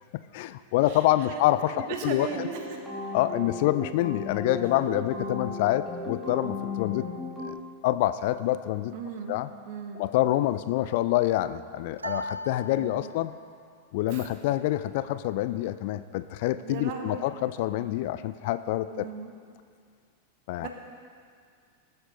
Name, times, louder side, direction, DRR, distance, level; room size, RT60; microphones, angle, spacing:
voice 1, 0.3-2.5 3.1-7.1 7.5-7.6 7.8-8.9 9.3-9.5 9.9-13.3 13.9-19.1 20.5-20.7, left 14 dB, 50° left, 13 dB, 0.4 m, -26 dB
voice 2, 1.7-2.8 8.9-9.4 9.7-10.0 12.8-13.1 14.1-14.2 16.6-17.3 18.9-19.3 20.6-20.7, right 6 dB, 45° right, 3 dB, 1.6 m, -37 dB
sound 1, 2.3-7.5, left 3 dB, 5° left, 2.5 m, -36 dB
sound 2, 12.0-13.5, right 1 dB, 80° right, 0.6 m, -38 dB
20.0 x 7.9 x 4.0 m, 2.1 s
figure-of-eight pair, 90°, 0 cm